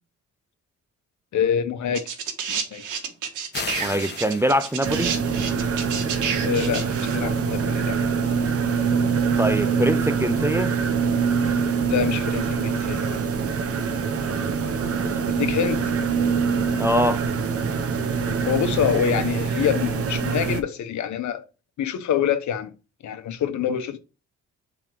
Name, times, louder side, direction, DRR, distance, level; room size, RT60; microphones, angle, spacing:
voice 1, 1.3-2.1 2.5-2.8 6.4-8.0 11.8-13.1 15.4-15.8 18.4-21.4 21.8-22.7 23.0-24.0, left 8 dB, 70° left, 1.2 m, -25 dB
sound 1, 1.9-7.2 8.2-8.3, right 6 dB, 80° right, 1.7 m, -30 dB
sound 2, 3.5-5.1, left 5 dB, 35° left, 1.1 m, -35 dB
voice 2, 3.8-5.2 9.4-10.8 14.8-15.3 16.8-17.2, equal, 10° right, 0.5 m, -24 dB
sound 3, 4.8-20.6, right 5 dB, 50° right, 1.1 m, -24 dB
7.9 x 3.8 x 4.8 m
cardioid pair, 90°, 30 cm